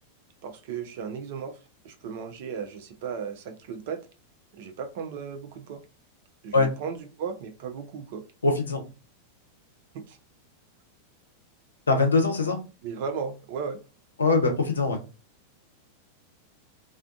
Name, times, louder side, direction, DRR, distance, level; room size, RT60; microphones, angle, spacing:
voice 1, 0.4-1.6 1.8-4.0 4.5-5.8 6.4-8.2 10.1-10.2 12.8-13.8, right 6 dB, 50° right, 7 dB, 0.4 m, -35 dB
voice 2, 8.4-8.8 11.9-12.6 14.2-15.0, left 3 dB, 75° left, 4 dB, 0.6 m, -22 dB
2.4 x 2.2 x 2.4 m, 0.31 s
figure-of-eight pair, 90°, 0 cm